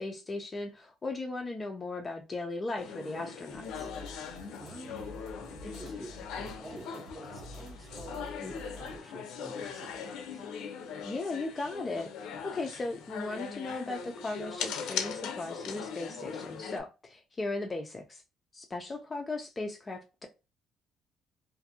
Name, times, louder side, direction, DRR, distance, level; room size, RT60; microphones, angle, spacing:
voice 1, 0.0-3.9 8.4-8.5 11.0-18.2 18.5-20.3, left 2 dB, 20° left, 0.4 m, -37 dB
sound 1, 2.8-16.8, left 6 dB, 80° left, 0.5 m, -40 dB
sound 2, 3.5-9.0, equal, 65° right, 0.7 m, -48 dB
voice 2, 4.6-10.4, right 2 dB, 20° right, 0.6 m, -49 dB
2.5 x 2.5 x 2.6 m
cardioid pair, 160°, 0 cm